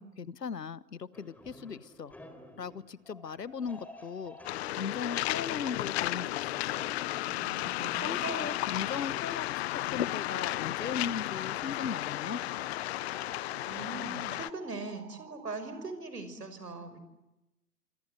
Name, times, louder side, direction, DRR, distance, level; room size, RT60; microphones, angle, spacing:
voice 1, 0.0-2.2 2.6-4.4 4.7-7.0 8.0-9.6 9.9-12.4, left 6 dB, 90° left, 19 dB, 1.2 m, -38 dB
sound 1, 1.1-9.4, left 1 dB, 5° left, 3.8 m, -52 dB
Waves surf, 4.4-14.5, left 16 dB, 45° left, 0.9 m, -33 dB
voice 2, 7.3-8.7 13.6-17.0, right 3 dB, 80° right, 10 dB, 5.9 m, -41 dB
sound 2, 10.9-15.9, right 10 dB, 45° right, 4.5 m, -53 dB
27.5 x 26.0 x 7.8 m, 0.96 s
figure-of-eight pair, 115°, 47 cm